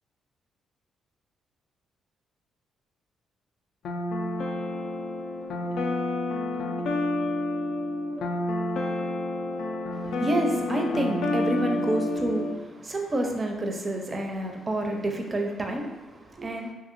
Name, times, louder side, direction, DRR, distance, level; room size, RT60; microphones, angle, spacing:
sound 1, 3.8-12.6, left 2 dB, 70° left, 0.3 m, -29 dB
voice 1, 9.9-16.7, right 1 dB, 30° right, 3 dB, 0.5 m, -29 dB
2.9 x 2.8 x 2.5 m, 1.1 s
cardioid pair, 90°, 0 cm